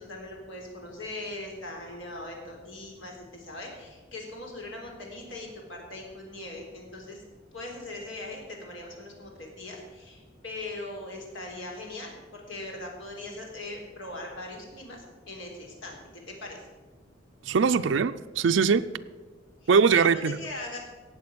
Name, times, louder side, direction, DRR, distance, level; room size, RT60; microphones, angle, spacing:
voice 1, 0.0-7.2 7.5-16.0 16.3-16.6 19.6-20.8, left 2 dB, 80° left, 0 dB, 3.7 m, -40 dB
voice 2, 17.5-18.8 19.7-20.4, right 5 dB, 70° right, 10 dB, 0.4 m, -21 dB
18.0 x 7.5 x 6.1 m, 1.3 s
head